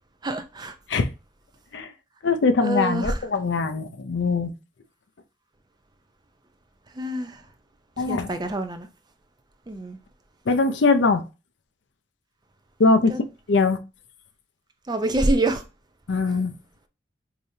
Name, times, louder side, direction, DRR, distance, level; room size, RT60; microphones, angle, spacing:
voice 1, 0.2-0.7 2.6-3.2 7.0-7.4 8.1-8.9 9.7-10.0 13.1-13.2 14.9-15.6, right 2 dB, 20° right, 0.4 m, -26 dB
voice 2, 2.2-4.5 8.0-8.3 10.5-11.2 12.8-13.1 13.5-13.8 16.1-16.5, left 3 dB, 65° left, 0.5 m, -21 dB
4.9 x 2.8 x 2.7 m
head